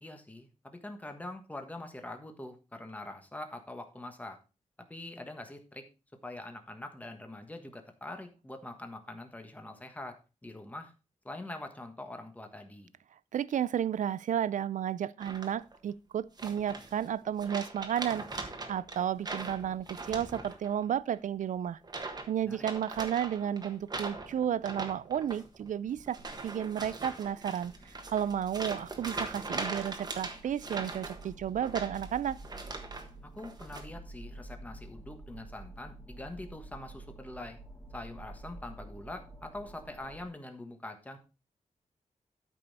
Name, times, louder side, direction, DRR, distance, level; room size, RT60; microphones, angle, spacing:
voice 1, 0.0-4.4 4.9-5.9 6.2-10.9 11.2-12.9 22.4-22.6 33.2-37.6 37.9-41.2, left 2 dB, 10° left, 1.4 m, -44 dB
voice 2, 13.3-18.2 18.7-21.8 22.3-26.2 26.4-27.7 28.1-32.4, right 9 dB, 85° right, 0.4 m, -32 dB
sound 1, 15.2-15.8 16.4-17.1 17.4-20.8 21.1-21.4 21.8-22.3 22.6-33.1 33.4-33.8, right 3 dB, 30° right, 1.4 m, -41 dB
sound 2, 27.6-40.3, right 2 dB, 30° left, 3.4 m, -49 dB
12.5 x 5.4 x 4.1 m
wide cardioid pair, 170°, 13 cm